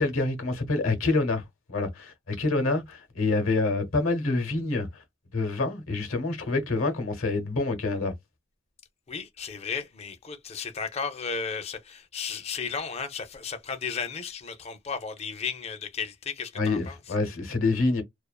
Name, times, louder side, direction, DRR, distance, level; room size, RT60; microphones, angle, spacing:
voice 1, 0.0-5.0 5.3-8.1 16.5-18.0, left 3 dB, 85° left, 0.8 m, -27 dB
voice 2, 9.1-17.0, left 5 dB, 30° left, 0.4 m, -34 dB
2.4 x 2.3 x 2.2 m
head